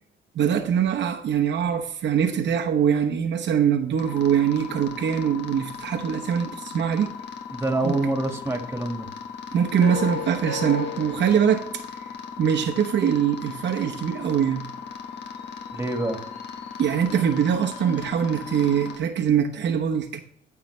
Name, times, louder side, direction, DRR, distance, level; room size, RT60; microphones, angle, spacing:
voice 1, 0.3-7.1 7.8-8.0 9.5-12.1 12.4-14.6 16.8-20.2, right 8 dB, 65° right, 2 dB, 1.0 m, -23 dB
sound 1, 4.0-19.0, left 6 dB, 60° left, 1.4 m, -36 dB
voice 2, 7.5-9.1 15.7-16.3, right 2 dB, 10° right, 4 dB, 1.8 m, -26 dB
13.5 x 5.8 x 3.2 m, 0.69 s
cardioid pair, 90°, 20 cm